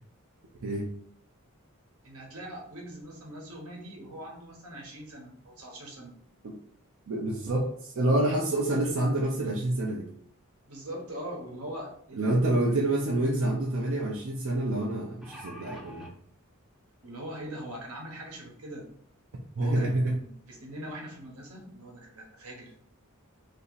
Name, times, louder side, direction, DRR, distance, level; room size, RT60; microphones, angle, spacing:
voice 1, 2.0-6.1 10.7-12.8 17.0-18.9 19.5-22.8, right 1 dB, 90° right, -1 dB, 1.1 m, -42 dB
voice 2, 7.1-10.1 12.1-16.1 19.6-20.2, right 1 dB, 70° right, -2 dB, 0.5 m, -27 dB
sound 1, 14.9-16.1 17.0-17.1 17.5-17.6, equal, 5° right, 0.5 m, -46 dB
3.0 x 2.7 x 3.9 m, 0.65 s
head